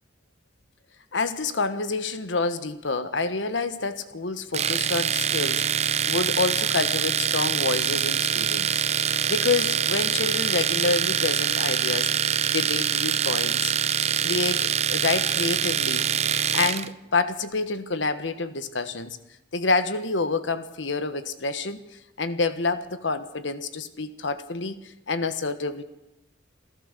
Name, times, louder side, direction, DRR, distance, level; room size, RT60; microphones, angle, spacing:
voice 1, 1.1-8.8 9.3-12.1 12.5-13.7 14.2-16.1 16.5-19.2 19.5-21.8 22.2-25.8, left 3 dB, 90° left, 11 dB, 1.4 m, -28 dB
Domestic sounds home sounds, 4.5-16.9, right 8 dB, 35° right, 0.7 m, -24 dB
27.5 x 14.5 x 6.8 m, 0.93 s
head